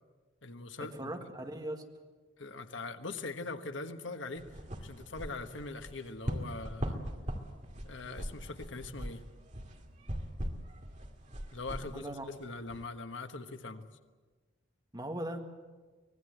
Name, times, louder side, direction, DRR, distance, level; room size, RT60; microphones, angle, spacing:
voice 1, 0.4-1.1 2.4-4.4 4.8-7.0 7.8-9.2 11.5-13.8, left 3 dB, 70° left, 7 dB, 1.4 m, -42 dB
voice 2, 0.9-1.8 11.8-12.3 14.9-15.4, right 1 dB, 20° right, 4 dB, 1.9 m, -39 dB
sound 1, 4.4-12.8, equal, 40° right, 2.4 m, -41 dB
25.0 x 19.5 x 8.0 m, 1.3 s
head